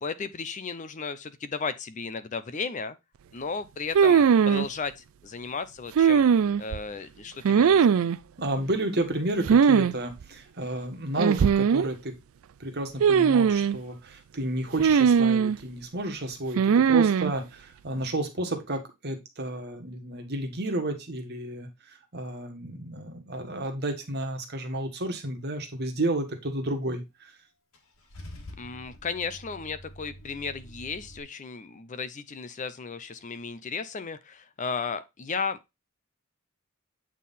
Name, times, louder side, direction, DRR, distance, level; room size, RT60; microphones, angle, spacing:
voice 1, 0.0-3.0 3.3-6.3 6.6-7.9 28.6-35.6, left 5 dB, 35° left, 0.5 m, -34 dB
sound 1, 3.9-4.7 6.0-6.8 7.4-8.2 9.5-9.9 10.2-10.3 11.2-11.9 13.0-13.8 14.8-15.6 16.6-17.3, right 7 dB, 75° right, 0.4 m, -20 dB
voice 2, 8.4-12.1 12.6-27.3, right 1 dB, 50° right, 1.5 m, -31 dB
Car / Engine starting / Idling, 27.7-31.2, equal, 70° left, 1.7 m, -46 dB
8.3 x 3.7 x 4.1 m
head